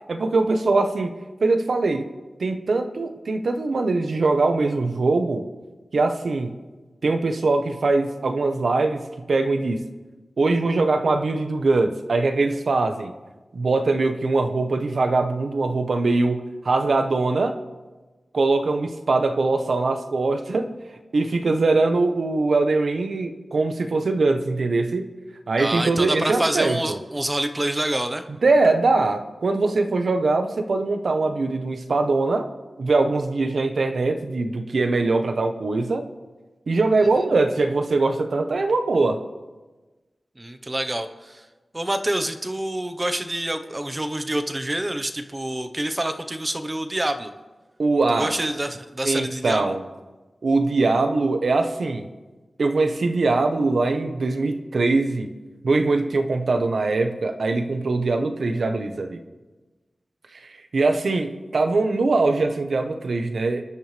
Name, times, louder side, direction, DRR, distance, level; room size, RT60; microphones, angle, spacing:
voice 1, 0.1-1.1 1.4-2.1 2.4-5.4 5.9-6.6 7.0-9.9 10.4-13.1 13.5-17.6 18.3-20.7 21.1-25.1 25.5-27.0 28.4-32.5 32.8-36.1 36.7-39.2 47.8-48.4 49.0-49.8 50.4-52.1 52.6-55.3 55.6-59.2 60.4-63.6, right 3 dB, 75° right, 6 dB, 1.3 m, -22 dB
voice 2, 25.6-28.2 40.4-41.4 41.7-47.3 48.1-49.7, right 1 dB, 25° right, 8 dB, 1.2 m, -27 dB
26.5 x 11.5 x 3.5 m, 1.2 s
wide cardioid pair, 90°, 0 cm